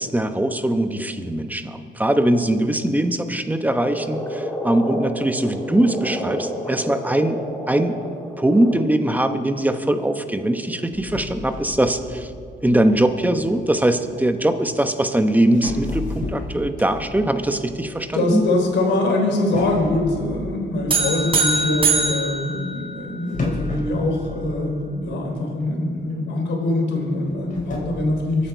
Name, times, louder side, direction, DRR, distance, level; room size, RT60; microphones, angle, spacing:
voice 1, 0.0-7.4 7.7-8.0 8.4-12.3 12.6-18.4, right 1 dB, 10° right, 8 dB, 1.0 m, -21 dB
Frog, 3.7-8.8, left 1 dB, 10° left, 2.9 m, -30 dB
sound 1, 10.9-14.1 15.0-15.1 15.5-18.9 19.5-21.4 23.3-25.1 25.4-25.5 26.1-26.2 27.2-27.9, left 2 dB, 45° left, 4.4 m, -33 dB
voice 2, 18.1-28.5, left 2 dB, 80° left, 0 dB, 3.6 m, -23 dB
sound 2, 20.9-23.4, right 3 dB, 30° right, 3.9 m, -22 dB
23.0 x 8.6 x 4.6 m, 2.2 s
cardioid pair, 80°, 19 cm